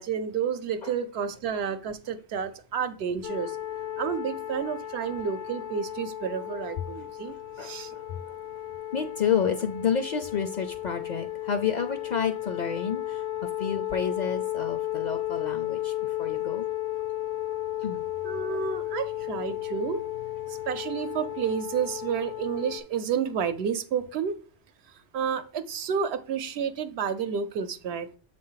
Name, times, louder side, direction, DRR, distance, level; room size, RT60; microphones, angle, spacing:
voice 1, 0.0-3.6 4.0-7.9 18.2-20.0 20.5-24.3 25.1-28.1, right 7 dB, 75° right, 0.9 m, -30 dB
sound 1, 3.2-22.8, left 13 dB, 80° left, 1.0 m, -34 dB
voice 2, 7.3-8.3 8.9-16.7 17.8-18.0, left 7 dB, 55° left, 0.5 m, -30 dB
7.2 x 2.5 x 5.6 m
omnidirectional pair, 1.1 m